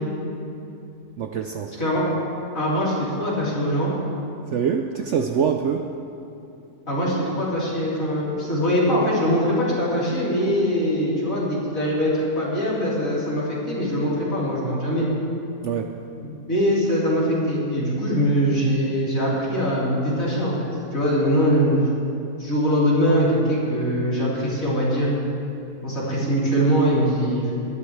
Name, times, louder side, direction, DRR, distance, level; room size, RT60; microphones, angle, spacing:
voice 1, 1.2-1.7 4.5-5.9 15.6-15.9, right 7 dB, 65° right, 4 dB, 0.8 m, -24 dB
voice 2, 2.5-3.9 6.9-15.1 16.4-20.7 20.9-21.9 22.4-25.1 25.8-27.5, equal, 60° left, -8 dB, 4.3 m, -22 dB
18.5 x 13.0 x 3.3 m, 2.8 s
omnidirectional pair, 1.6 m